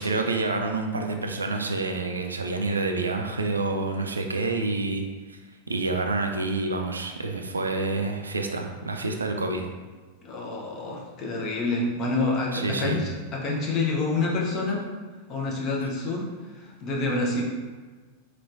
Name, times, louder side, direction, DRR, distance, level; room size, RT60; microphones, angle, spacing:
voice 1, 0.0-5.4 5.7-9.7 12.5-13.0, right 3 dB, 75° right, 3 dB, 0.3 m, -28 dB
voice 2, 10.2-14.8 15.3-16.3 16.5-17.4, left 3 dB, 35° left, -2 dB, 0.7 m, -27 dB
3.2 x 3.1 x 2.5 m, 1.4 s
figure-of-eight pair, 90°, 0 cm